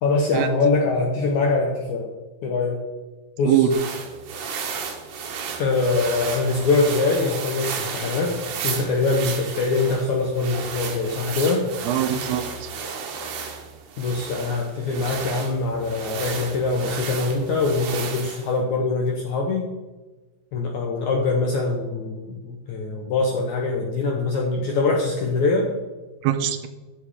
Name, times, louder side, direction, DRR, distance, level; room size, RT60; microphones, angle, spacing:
voice 1, 0.0-2.1 2.4-2.9 3.4-3.7 5.6-11.7 14.0-19.7 20.5-25.8, left 3 dB, 70° left, 1 dB, 1.8 m, -23 dB
sound 1, 3.7-18.5, right 6 dB, 65° right, 2.3 m, -33 dB
voice 2, 11.9-12.7 26.2-26.7, right 10 dB, 85° right, 9 dB, 2.7 m, -22 dB
14.5 x 6.3 x 4.9 m, 1.2 s
omnidirectional pair, 4.7 m